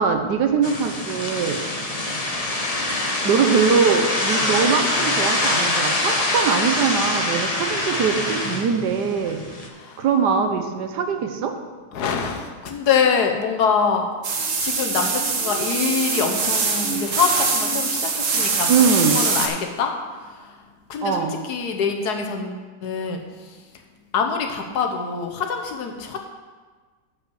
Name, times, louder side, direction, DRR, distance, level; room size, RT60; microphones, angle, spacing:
voice 1, 0.0-1.6 3.2-9.4 10.0-11.5 18.7-19.2 21.0-21.3, right 6 dB, 80° right, 5 dB, 1.5 m, -21 dB
sound 1, 0.6-9.7, left 2 dB, 30° left, 0.9 m, -24 dB
voice 2, 11.9-14.1 14.6-18.7 19.1-19.9 20.9-23.2 24.1-26.2, left 6 dB, 70° left, 3 dB, 1.5 m, -24 dB
sound 2, 14.2-19.5, right 4 dB, 55° right, 1.3 m, -23 dB
9.4 x 5.7 x 6.3 m, 1.4 s
omnidirectional pair, 1.8 m